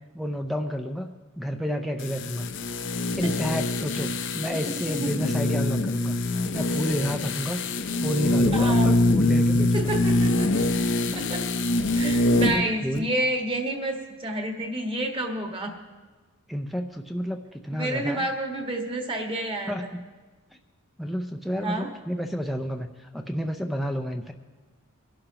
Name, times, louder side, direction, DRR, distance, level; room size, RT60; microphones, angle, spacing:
voice 1, 0.1-1.1 1.4-2.5 3.0-7.6 8.0-9.8 12.5-13.1 16.5-18.3 19.7-20.0 21.0-24.3, equal, ahead, 5 dB, 0.5 m, -30 dB
sound 1, 2.0-12.7 12.9-13.0, left 2 dB, 55° left, 0.7 m, -24 dB
voice 2, 4.9-5.3 8.5-8.9 9.7-10.7 11.1-11.5 11.9-15.8 17.7-19.9 21.6-21.9, right 1 dB, 25° right, 3 dB, 1.5 m, -29 dB
23.0 x 11.5 x 2.9 m, 1.4 s
head